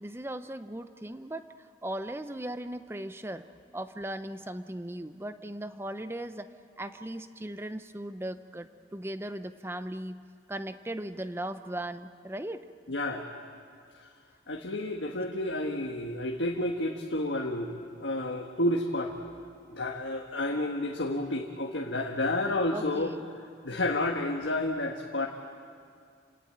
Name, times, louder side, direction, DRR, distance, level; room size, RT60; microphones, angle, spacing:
voice 1, 0.0-3.5 3.7-6.5 6.8-10.2 10.5-12.7 22.7-23.3, right 1 dB, 15° right, 10 dB, 0.7 m, -38 dB
voice 2, 12.9-13.3 14.5-19.1 19.7-23.1 23.6-25.3, left 1 dB, 90° left, 1 dB, 1.5 m, -30 dB
29.0 x 18.0 x 8.8 m, 2.3 s
head